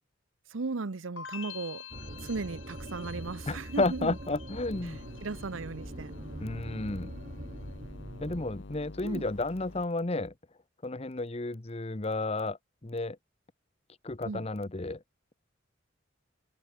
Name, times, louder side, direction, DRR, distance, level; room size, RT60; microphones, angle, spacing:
voice 1, 0.5-1.8 2.2-4.1 5.2-6.1 9.0-9.3 14.3-14.5, right 3 dB, 85° right, 0.8 m, -36 dB
sound 1, 1.2-6.2 6.5-7.1, left 8 dB, 90° left, 6.6 m, -48 dB
sound 2, 1.9-8.5, right 1 dB, 45° right, 2.4 m, -43 dB
voice 2, 3.5-5.0 6.4-7.1 8.2-10.3 10.8-13.2 14.0-15.0, left 2 dB, 30° left, 0.9 m, -32 dB
sound 3, 4.5-9.9, left 2 dB, 70° left, 1.1 m, -48 dB
head